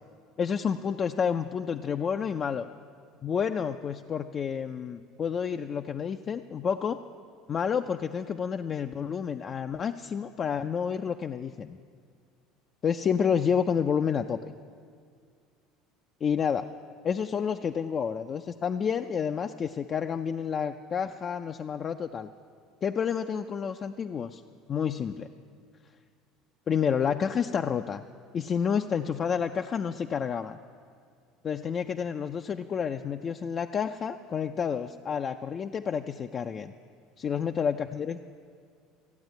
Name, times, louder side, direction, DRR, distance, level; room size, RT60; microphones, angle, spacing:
voice 1, 0.4-2.7 3.2-7.0 7.5-11.8 12.8-14.5 16.2-16.7 17.0-22.3 22.8-24.4 24.7-25.3 26.7-28.0 28.3-30.6 31.4-36.7 37.2-38.2, left 7 dB, 35° left, 6 dB, 0.4 m, -29 dB
14.5 x 8.7 x 9.2 m, 2.2 s
supercardioid pair, 110°, 0 cm